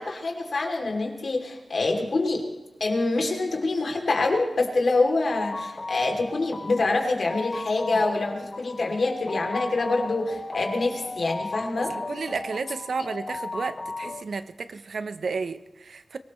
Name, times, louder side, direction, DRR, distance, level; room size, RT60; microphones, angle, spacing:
voice 1, 0.0-2.4 2.8-11.9, left 3 dB, 65° left, 2.9 m, -25 dB
sound 1, 5.3-14.2, left 3 dB, 30° left, 1.0 m, -36 dB
voice 2, 11.9-16.2, right 4 dB, 75° right, 0.8 m, -32 dB
24.5 x 18.0 x 3.2 m
wide cardioid pair, 120°, 0 cm